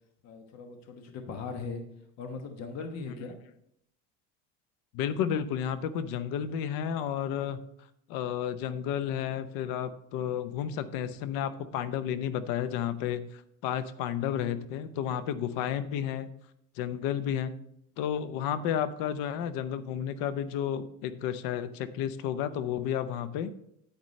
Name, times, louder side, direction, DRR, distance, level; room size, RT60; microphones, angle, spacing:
voice 1, 0.2-1.8 2.2-3.4, left 4 dB, 50° left, 5 dB, 1.2 m, -39 dB
voice 2, 4.9-7.6 8.1-16.3 16.8-17.5 18.0-23.5, left 9 dB, 75° left, 13 dB, 0.8 m, -32 dB
9.5 x 8.9 x 3.2 m, 0.73 s
cardioid pair, 145°, 35 cm